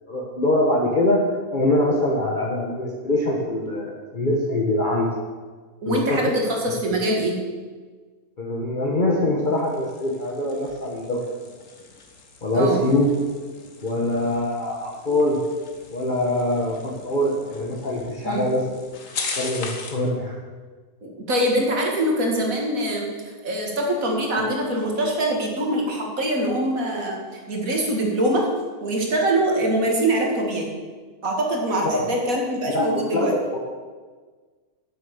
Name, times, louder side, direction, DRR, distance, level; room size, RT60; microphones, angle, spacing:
voice 1, 0.1-1.2 1.5-5.1 5.9-6.2 8.4-11.2 12.4-13.1 13.8-15.4 15.9-18.6 19.4-20.4 31.8-32.0 32.7-33.6, left 1 dB, 35° left, -2 dB, 1.3 m, -23 dB
voice 2, 5.8-7.4 12.5-12.8 18.2-18.4 21.0-28.5 28.8-30.7 31.2-33.3, right 1 dB, 65° right, 0 dB, 2.5 m, -23 dB
sound 1, 9.4-20.1, left 4 dB, 60° left, 1.6 m, -39 dB
10.0 x 7.6 x 7.1 m, 1.5 s
omnidirectional pair, 1.6 m